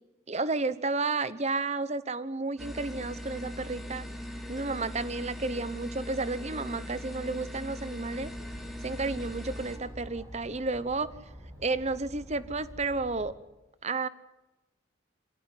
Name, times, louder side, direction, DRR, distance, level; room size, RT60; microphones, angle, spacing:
voice 1, 0.3-4.1 4.5-8.3 8.8-11.1 11.6-13.3 13.8-14.1, right 3 dB, 35° right, 15 dB, 1.0 m, -32 dB
sound 1, 2.6-9.8, equal, ahead, 2.6 m, -40 dB
Chatter, 8.2-13.3, equal, 15° right, 6.4 m, -47 dB
26.5 x 16.5 x 9.9 m, 1.0 s
head